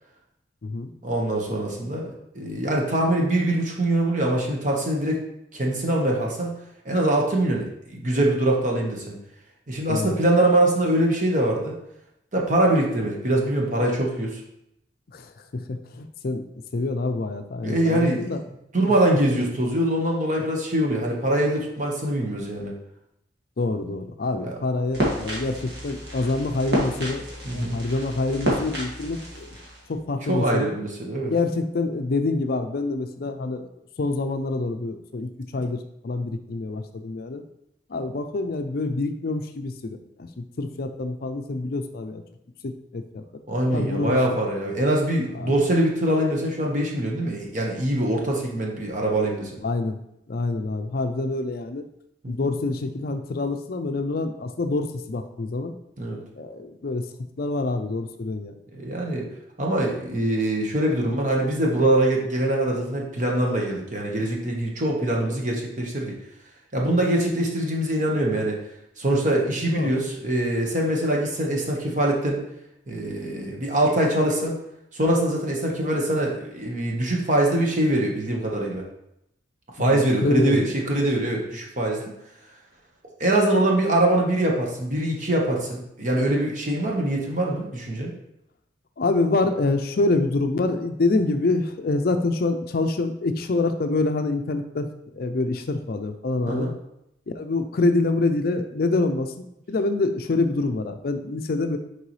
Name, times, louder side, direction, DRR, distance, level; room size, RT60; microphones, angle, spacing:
voice 1, 1.0-5.2 5.5-6.6 6.8-9.2 9.7-11.8 12.3-14.4 17.6-18.4 18.7-22.7 24.4-24.6 27.4-27.8 30.3-31.3 43.5-49.6 52.2-52.5 56.0-56.2 58.7-59.3 59.6-66.1 66.7-68.6 69.0-72.4 72.9-74.6 74.9-78.8 79.7-82.0 83.2-88.1 96.5-96.7, right 1 dB, 40° right, -1 dB, 1.1 m, -23 dB
voice 2, 15.5-16.5 16.7-18.4 19.3-19.4 23.6-27.2 27.5-29.6 29.9-30.7 31.3-33.7 34.0-37.4 37.9-42.2 42.6-43.2 43.7-44.2 45.3-45.5 49.6-50.0 50.3-51.8 52.3-55.8 56.4-57.1 57.4-58.5 69.7-69.9 79.8-80.7 89.0-94.9 95.1-96.7 97.4-101.8, left 2 dB, 50° left, 7 dB, 0.4 m, -26 dB
sound 1, 24.9-29.9, right 1 dB, 55° right, 1.8 m, -30 dB
6.7 x 4.7 x 3.1 m, 0.81 s
head